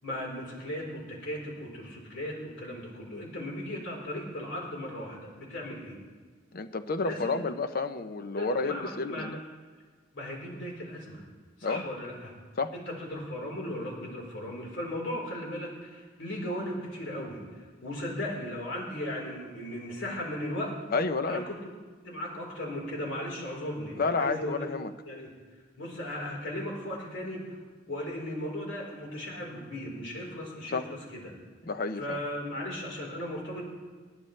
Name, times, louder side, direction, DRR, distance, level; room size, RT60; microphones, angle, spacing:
voice 1, 0.0-6.0 7.0-7.3 8.3-9.3 10.1-11.2 11.6-12.3 12.7-20.7 21.3-21.6 22.0-24.7 25.1-25.3 25.8-27.6 27.9-31.3 32.0-33.6, left 1 dB, 70° left, -2 dB, 4.1 m, -37 dB
voice 2, 6.5-9.4 11.6-11.8 12.6-12.7 20.9-21.5 24.0-24.9 30.7-30.8 31.7-32.2, left 3 dB, 50° left, 10 dB, 0.7 m, -30 dB
20.5 x 14.0 x 3.3 m, 1.5 s
head